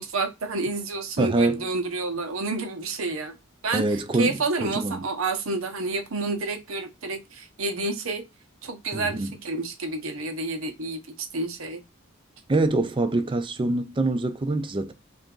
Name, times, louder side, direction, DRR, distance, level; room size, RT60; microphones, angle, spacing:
voice 1, 0.0-3.3 3.6-8.2 8.6-11.8, right 3 dB, 75° right, 0.9 m, -29 dB
voice 2, 1.2-1.7 3.7-5.0 8.9-9.3 12.5-14.9, right 2 dB, 25° right, 0.5 m, -25 dB
3.4 x 2.6 x 3.7 m
head